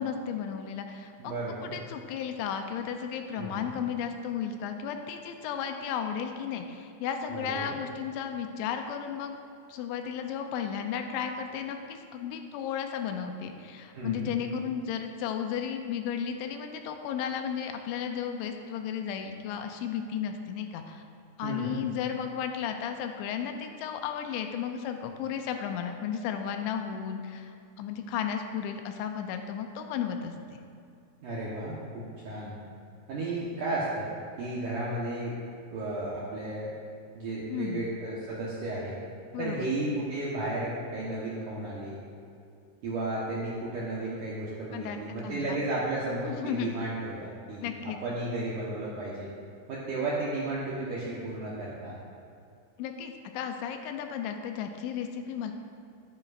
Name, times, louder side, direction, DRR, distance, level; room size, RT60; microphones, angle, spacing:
voice 1, 0.0-1.3 1.6-9.3 9.7-21.0 21.4-30.6 37.5-37.9 39.3-39.7 44.7-45.6 46.2-46.7 47.6-48.0 52.8-55.5, left 8 dB, 85° left, 5 dB, 2.9 m, -34 dB
voice 2, 1.2-1.7 3.4-3.7 7.3-7.7 13.9-14.3 21.4-21.8 31.2-32.5 33.1-34.1 34.4-35.4 35.7-36.7 37.1-39.0 39.4-42.0 42.8-49.3 49.7-52.0, right 2 dB, 75° right, -7 dB, 1.9 m, -33 dB
14.0 x 10.5 x 2.5 m, 2.4 s
omnidirectional pair, 5.3 m